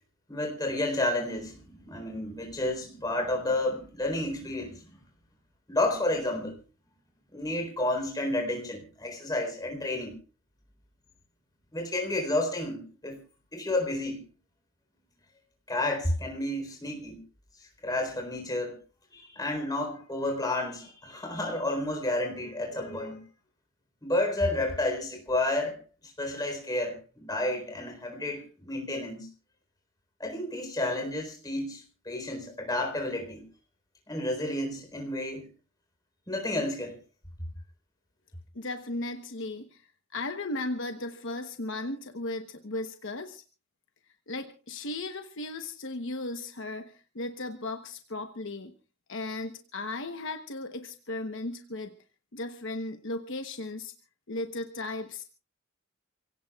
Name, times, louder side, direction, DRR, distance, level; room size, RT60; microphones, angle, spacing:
voice 1, 0.3-5.0 5.7-6.6 7.3-10.2 11.7-13.2 13.5-14.2 15.7-17.2 17.8-18.8 19.1-23.2 24.0-25.8 26.2-29.3 30.2-33.4 34.1-35.5 36.3-37.0, left 1 dB, 20° left, 2 dB, 4.1 m, -31 dB
voice 2, 38.5-39.8 40.1-43.4 44.3-48.7 49.1-51.9 52.3-53.9 54.3-55.2, left 2 dB, 60° left, 6 dB, 1.1 m, -36 dB
28.5 x 17.0 x 2.4 m, 0.35 s
head